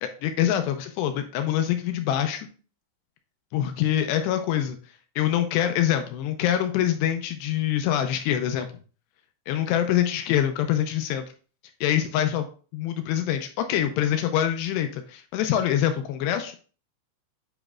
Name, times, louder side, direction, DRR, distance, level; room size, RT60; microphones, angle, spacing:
voice 1, 0.0-2.5 3.5-4.8 5.2-8.7 9.5-11.3 11.8-12.5 12.7-16.6, left 11 dB, 85° left, 7 dB, 2.5 m, -25 dB
8.7 x 5.1 x 2.4 m, 0.39 s
omnidirectional pair, 5.5 m